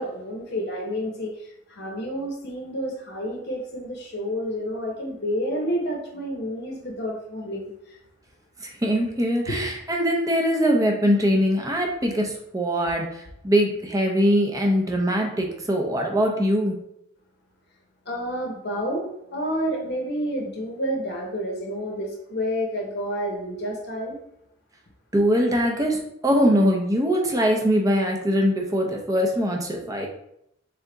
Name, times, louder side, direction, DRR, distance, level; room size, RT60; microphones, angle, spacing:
voice 1, 0.0-8.0 9.5-9.6 18.1-24.2, equal, 50° left, 0 dB, 0.8 m, -29 dB
voice 2, 8.6-16.8 25.1-30.1, equal, 15° right, 1 dB, 0.6 m, -22 dB
3.6 x 3.4 x 3.8 m, 0.77 s
head